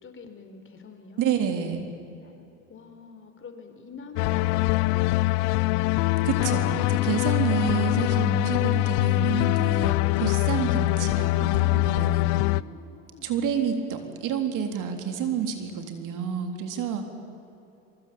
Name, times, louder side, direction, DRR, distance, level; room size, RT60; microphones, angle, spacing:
voice 1, 0.0-1.4 2.2-5.0 5.4-6.3 12.4-13.3, left 4 dB, 35° left, 7 dB, 4.1 m, -47 dB
voice 2, 1.2-1.9 6.2-12.3 13.2-17.0, right 7 dB, 60° right, 5 dB, 3.6 m, -29 dB
sound 1, 4.2-12.6, left 21 dB, 75° left, 0.6 m, -23 dB
25.0 x 23.0 x 8.7 m, 2.8 s
supercardioid pair, 90°, 36 cm